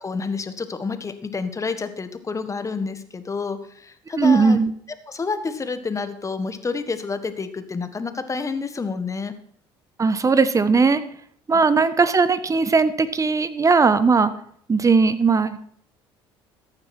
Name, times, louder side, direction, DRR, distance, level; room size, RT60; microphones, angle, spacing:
voice 1, 0.0-4.6 5.1-9.3 11.5-11.6, left 4 dB, 25° left, 10 dB, 1.6 m, -29 dB
voice 2, 4.2-4.7 10.0-11.0 11.5-14.3 14.7-15.6, right 4 dB, 25° right, 13 dB, 1.2 m, -18 dB
14.5 x 9.6 x 4.5 m, 0.62 s
hypercardioid pair, 70°, 12 cm